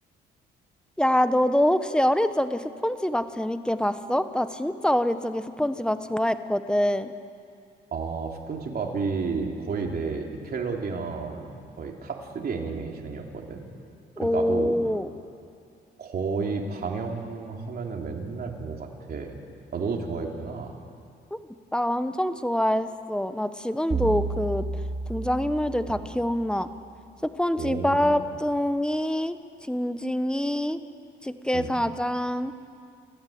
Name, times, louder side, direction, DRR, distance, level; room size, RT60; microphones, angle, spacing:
voice 1, 1.0-7.1 14.2-15.1 21.7-24.7 25.1-26.7 27.2-29.4 29.6-30.8 31.2-32.5, left 1 dB, 5° left, 11 dB, 1.1 m, -25 dB
voice 2, 7.9-13.6 14.2-14.7 16.0-19.4 19.7-20.8 25.9-26.0 27.6-28.2 31.5-31.7, right 4 dB, 50° right, 1 dB, 3.3 m, -32 dB
sound 1, 23.9-26.4, right 4 dB, 35° right, 2.7 m, -31 dB
28.5 x 14.0 x 8.7 m, 2.4 s
cardioid pair, 90°, 20 cm